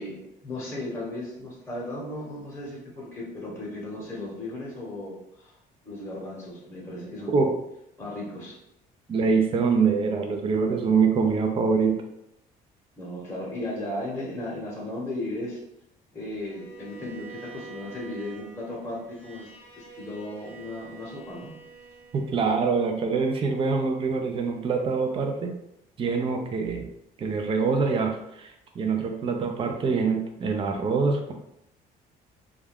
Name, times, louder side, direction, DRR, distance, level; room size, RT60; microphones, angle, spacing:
voice 1, 0.0-5.6 5.8-7.5 8.0-8.6 13.0-15.6 16.1-19.5 19.7-21.5, left 1 dB, 15° left, -5 dB, 0.9 m, -36 dB
voice 2, 9.1-11.9 22.1-25.5 26.0-26.9 27.2-31.3, right 5 dB, 30° right, 3 dB, 0.4 m, -24 dB
Bowed string instrument, 16.4-22.7, right 4 dB, 60° right, 1.2 m, -47 dB
2.3 x 2.2 x 3.4 m, 0.80 s
cardioid pair, 110°, 17 cm